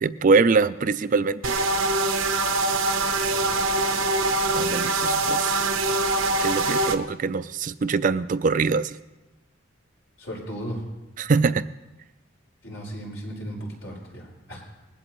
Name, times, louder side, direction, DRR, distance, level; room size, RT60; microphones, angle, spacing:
voice 1, 0.0-1.7 4.5-5.7 6.4-9.0 11.2-11.6, right 4 dB, 40° right, 13 dB, 0.4 m, -23 dB
sound 1, 1.4-7.0, right 2 dB, 90° right, 1.0 m, -23 dB
voice 2, 3.3-3.6 10.2-10.8 12.6-14.6, equal, 80° left, -2 dB, 4.7 m, -36 dB
20.5 x 15.5 x 3.1 m, 1.0 s
head